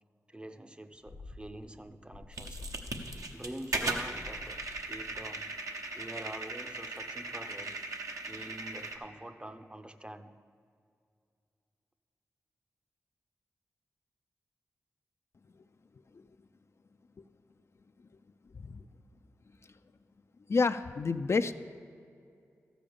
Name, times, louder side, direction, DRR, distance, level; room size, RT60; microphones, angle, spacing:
voice 1, 0.3-2.7 3.3-4.6 4.9-5.6 5.9-7.8 8.3-10.4, right 1 dB, 15° right, 0.6 m, -46 dB
sound 1, 1.0-6.1, left 3 dB, 70° left, 1.1 m, -49 dB
sound 2, 2.3-9.0, right 2 dB, 70° right, 1.0 m, -38 dB
voice 2, 18.5-18.9 20.5-21.6, left 4 dB, 50° left, 0.4 m, -29 dB
13.0 x 5.1 x 7.0 m
cardioid pair, 40°, 6 cm